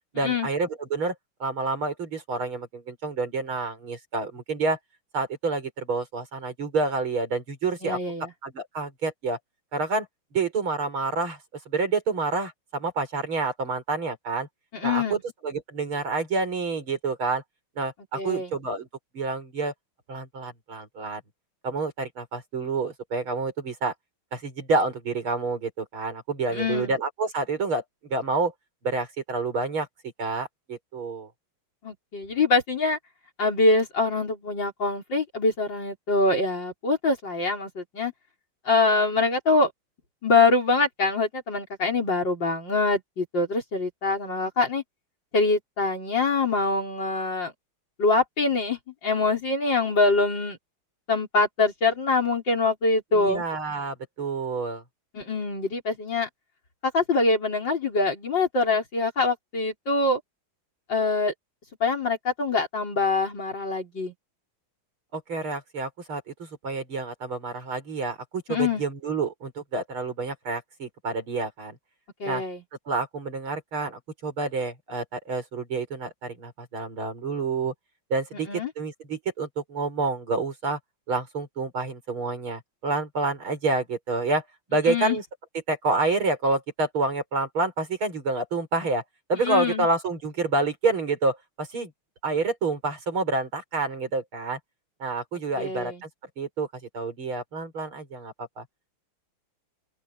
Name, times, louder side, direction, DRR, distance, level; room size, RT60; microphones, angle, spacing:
voice 1, 0.1-1.1 1.4-4.8 5.1-8.0 8.4-9.4 9.7-10.1 10.3-11.4 11.7-14.5 14.8-17.4 17.8-18.9 19.1-19.7 20.1-21.2 21.6-23.9 24.3-28.5 28.8-29.9 30.2-31.3 53.1-54.8 65.1-71.8 72.2-72.4 72.9-77.7 78.1-80.8 81.1-84.4 84.7-85.2 85.7-89.0 89.3-91.9 92.2-94.6 95.0-96.1 96.4-96.7 96.9-98.6, right 3 dB, 75° right, 6.2 m, -28 dB
voice 2, 7.8-8.3 14.7-15.2 18.1-18.5 26.5-26.9 31.8-33.0 33.4-38.1 38.7-39.7 40.2-44.8 45.3-47.5 48.0-50.6 51.1-53.4 55.1-56.3 56.9-60.2 60.9-61.3 61.8-64.1 68.5-68.8 72.2-72.6 78.5-78.7 84.9-85.2 89.4-89.9 95.6-96.0, left 3 dB, 55° left, 5.8 m, -24 dB
open air
omnidirectional pair, 2.3 m